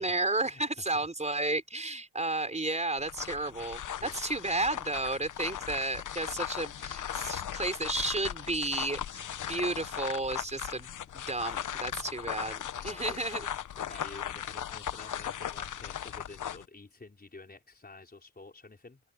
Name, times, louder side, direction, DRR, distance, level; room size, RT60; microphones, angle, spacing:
voice 1, 0.0-10.9 11.1-13.5, right 2 dB, 20° right, 5.0 m, -32 dB
sound 1, 3.0-16.7, left 10 dB, 70° left, 1.0 m, -38 dB
voice 2, 9.1-9.6 12.0-12.1 12.7-13.4 13.8-19.0, left 3 dB, 30° left, 4.9 m, -50 dB
cardioid pair, 70°, 31 cm